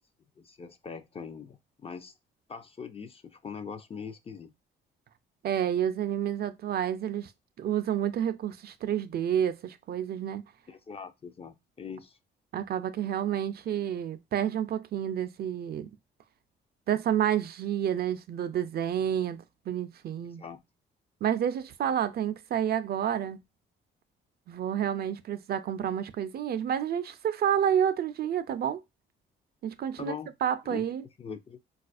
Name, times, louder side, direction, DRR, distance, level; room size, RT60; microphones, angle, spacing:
voice 1, 0.4-2.1 2.5-4.5 10.7-12.2 20.4-20.6 30.0-30.3 30.6-30.9 31.2-31.6, left 6 dB, 30° left, 0.4 m, -41 dB
voice 2, 5.4-7.3 7.6-10.4 12.5-15.9 16.9-19.4 19.7-20.4 21.2-23.4 24.5-28.8 29.6-30.1 30.4-31.0, right 9 dB, 55° right, 0.4 m, -29 dB
4.0 x 2.4 x 2.4 m
cardioid pair, 90°, 20 cm